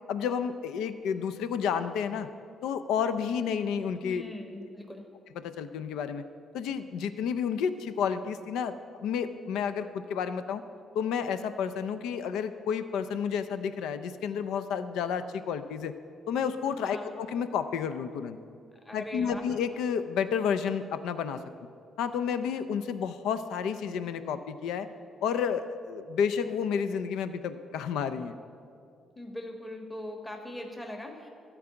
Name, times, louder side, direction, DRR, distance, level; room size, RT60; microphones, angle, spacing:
voice 1, 0.1-2.3 2.6-4.2 5.3-6.2 6.5-8.7 9.0-10.6 10.9-15.9 16.3-18.4 18.9-21.4 22.0-24.9 25.2-28.4, left 7 dB, 90° left, 11 dB, 0.5 m, -31 dB
voice 2, 4.0-5.1 16.8-17.1 18.7-19.4 29.2-31.3, left 1 dB, 15° left, 2 dB, 1.4 m, -40 dB
13.5 x 4.7 x 8.7 m, 2.4 s
cardioid pair, 90°, 0 cm